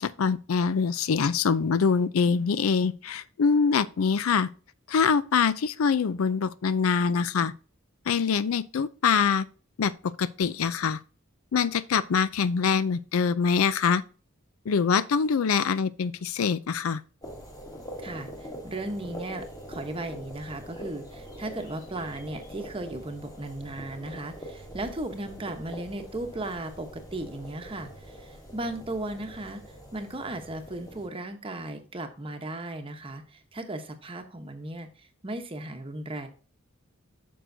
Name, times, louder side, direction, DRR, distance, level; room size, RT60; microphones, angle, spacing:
voice 1, 0.0-4.5 4.9-7.5 8.1-9.5 9.8-9.9 10.2-11.0 11.5-14.0 14.7-17.0, left 6 dB, 80° left, 0.4 m, -24 dB
sound 1, 17.2-31.1, equal, 20° left, 1.6 m, -43 dB
voice 2, 18.0-36.3, right 2 dB, 25° right, 0.9 m, -36 dB
9.2 x 6.2 x 2.7 m
head